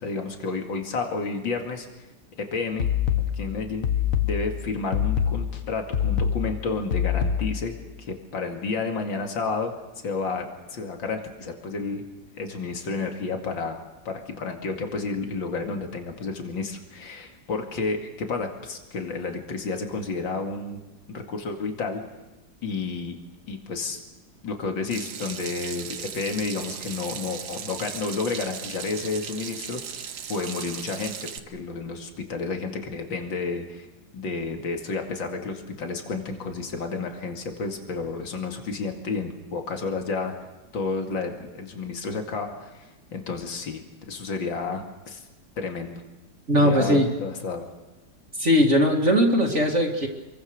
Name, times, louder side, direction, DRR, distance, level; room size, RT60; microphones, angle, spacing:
voice 1, 0.0-1.9 2.4-2.9 3.3-3.9 4.2-9.7 10.0-12.0 12.4-20.8 21.1-22.0 22.6-23.2 23.5-24.0 24.4-29.8 30.3-33.9 34.1-40.3 40.7-43.8 44.1-45.2 45.6-46.0 46.5-47.6, left 4 dB, 75° left, 4 dB, 3.0 m, -31 dB
sound 1, 2.8-7.8, left 8 dB, 45° left, 1.7 m, -25 dB
Water tap faucet / Sink (filling or washing), 24.9-31.4, right 8 dB, 80° right, 1.9 m, -37 dB
voice 2, 46.5-47.1 48.4-50.1, equal, 35° right, 1 dB, 2.6 m, -19 dB
28.0 x 23.0 x 6.7 m, 1.1 s
omnidirectional pair, 2.1 m